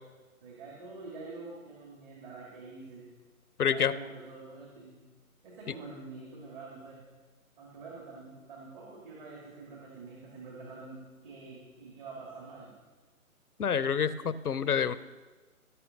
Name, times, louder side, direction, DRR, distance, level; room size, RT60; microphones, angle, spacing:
voice 1, 0.4-3.1 3.6-5.0 5.4-7.0 7.6-12.7, right 3 dB, 35° right, -3 dB, 2.1 m, -46 dB
voice 2, 3.6-4.0 5.7-5.8 13.6-15.0, left 7 dB, 80° left, 16 dB, 0.7 m, -28 dB
15.5 x 5.9 x 6.4 m, 1.3 s
figure-of-eight pair, 135°, 44 cm